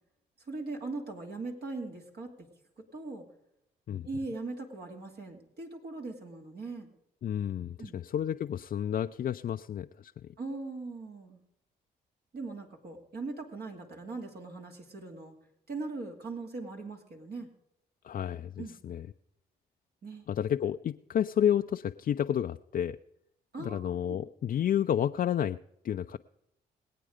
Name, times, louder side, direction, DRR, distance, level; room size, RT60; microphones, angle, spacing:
voice 1, 0.5-2.5 2.8-3.3 4.0-6.9 7.8-8.0 10.4-11.4 12.3-15.3 15.7-17.5 18.6-18.8 20.0-20.2 23.5-24.2, right 3 dB, 60° right, 1 dB, 2.7 m, -40 dB
voice 2, 7.2-10.3 18.0-19.1 20.3-23.0 23.6-25.6 25.8-26.2, left 9 dB, 50° left, 7 dB, 0.4 m, -30 dB
19.5 x 8.5 x 5.0 m, 0.81 s
supercardioid pair, 55°, 19 cm